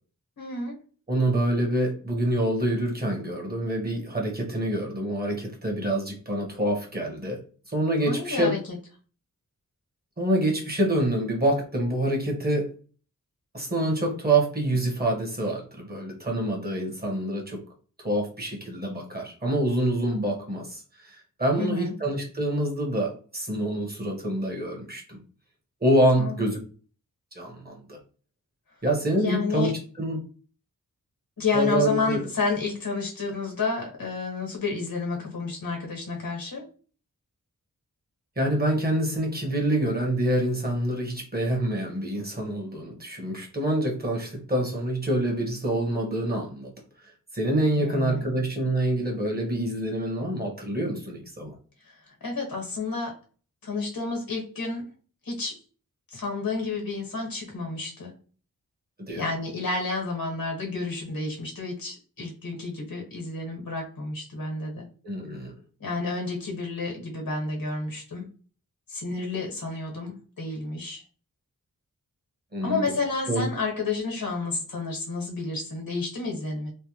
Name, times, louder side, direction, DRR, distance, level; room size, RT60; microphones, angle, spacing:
voice 1, 0.4-0.8 8.0-8.8 21.6-21.9 26.2-26.5 29.2-29.7 31.4-36.7 47.8-48.3 51.8-53.2 53.6-54.9 55.2-55.6 56.1-58.1 59.1-64.9 65.8-68.3 68.9-71.0 72.6-76.7, left 3 dB, 85° left, 0 dB, 1.3 m, -30 dB
voice 2, 1.1-7.4 7.7-8.5 10.2-12.7 13.5-17.6 18.0-25.2 25.8-26.6 27.3-28.0 28.8-29.7 30.0-30.2 31.5-32.2 38.4-46.7 47.3-51.5 59.1-59.2 65.0-65.5 72.5-72.8 73.3-73.5, right 1 dB, 30° right, 0 dB, 1.2 m, -26 dB
3.4 x 2.1 x 2.9 m, 0.40 s
wide cardioid pair, 90°, 34 cm